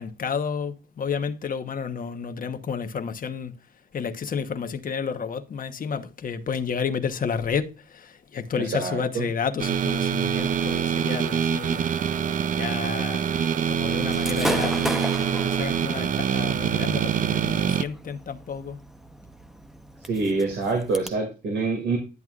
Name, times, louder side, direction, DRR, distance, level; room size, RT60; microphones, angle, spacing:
voice 1, 0.0-3.5 3.9-11.8 12.6-13.4 13.7-18.8, left 6 dB, 45° left, 1.1 m, -31 dB
voice 2, 8.6-9.2 10.4-10.5 20.0-22.0, right 3 dB, 65° right, 2.4 m, -26 dB
sound 1, 9.6-17.8, right 8 dB, 40° right, 0.5 m, -25 dB
Gunshot gunfire / Fireworks, 14.1-21.1, equal, ahead, 0.9 m, -35 dB
11.0 x 7.8 x 2.5 m
cardioid pair, 90°, 20 cm